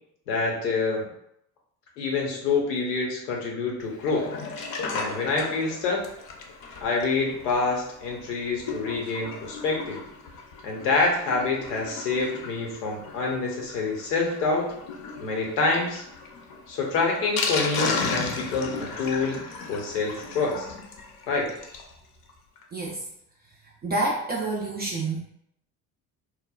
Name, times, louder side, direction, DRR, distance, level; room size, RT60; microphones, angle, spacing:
voice 1, 0.3-1.1 2.0-4.3 4.9-6.0 6.8-10.0 10.6-14.7 15.2-16.0 16.7-19.4 19.7-20.6 21.3-21.5, left 3 dB, 80° left, -1 dB, 0.8 m, -26 dB
Sink (filling or washing), 3.9-21.9 22.3-22.4 22.6-22.7 23.0-23.1, left 4 dB, 50° left, 0.6 m, -35 dB
voice 2, 23.8-25.2, right 2 dB, 25° right, -2 dB, 0.3 m, -28 dB
3.0 x 2.0 x 2.3 m, 0.74 s
hypercardioid pair, 60°, 46 cm